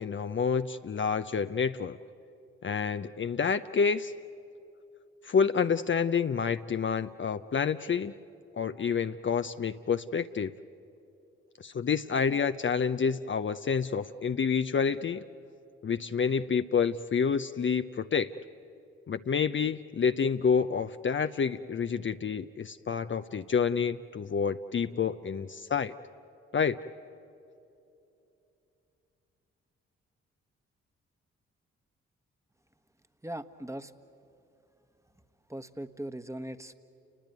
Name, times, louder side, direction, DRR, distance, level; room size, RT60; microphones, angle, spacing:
voice 1, 0.0-2.0 2.6-4.1 5.2-8.1 8.5-10.5 11.6-15.2 15.8-18.3 19.1-25.9 26.5-26.8, left 6 dB, 40° left, 9 dB, 0.7 m, -28 dB
voice 2, 33.2-33.9 35.5-36.7, right 1 dB, 10° right, 10 dB, 1.4 m, -39 dB
30.0 x 20.0 x 9.4 m, 2.8 s
hypercardioid pair, 45°, 29 cm